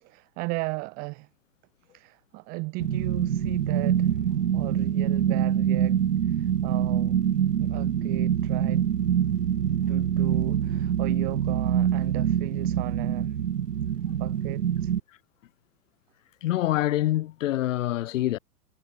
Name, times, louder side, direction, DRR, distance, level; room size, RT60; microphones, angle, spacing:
voice 1, 0.0-1.3 1.9-4.2 4.5-6.0 6.3-7.3 7.6-8.9 9.9-13.4 14.1-14.9, right 27 dB, 20° right, 0.5 m, -36 dB
sound 1, 2.8-15.0, right 9 dB, 85° right, 0.7 m, -25 dB
voice 2, 16.4-18.4, left 14 dB, 55° left, 2.1 m, -25 dB
figure-of-eight pair, 110°, 46 cm